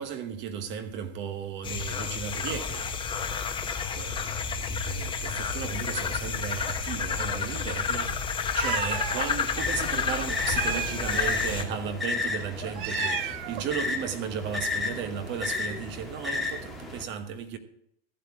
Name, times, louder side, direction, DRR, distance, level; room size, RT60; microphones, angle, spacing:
voice 1, 0.0-2.8 3.9-17.6, right 7 dB, 35° right, 1.2 m, -35 dB
sound 1, 1.6-11.6, left 6 dB, 15° left, 1.1 m, -30 dB
Meow, 8.6-9.2 10.5-11.4 12.6-13.7, right 14 dB, 55° right, 0.6 m, -34 dB
sound 2, 9.6-17.0, left 3 dB, ahead, 2.3 m, -33 dB
14.5 x 8.2 x 4.8 m
hypercardioid pair, 125°, 31 cm